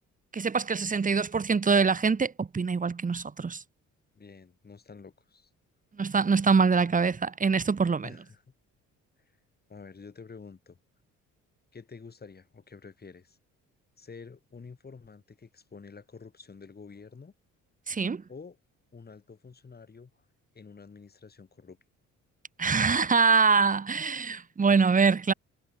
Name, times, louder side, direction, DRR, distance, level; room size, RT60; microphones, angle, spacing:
voice 1, 0.3-3.6 6.0-8.1 17.9-18.2 22.6-25.3, right 5 dB, 25° right, 1.4 m, -24 dB
voice 2, 4.1-5.5 8.0-8.4 9.7-10.8 11.7-13.4 14.0-17.3 18.3-18.6 18.9-20.1 20.5-21.8, left 5 dB, 30° left, 5.0 m, -48 dB
cardioid pair, 90°, 30 cm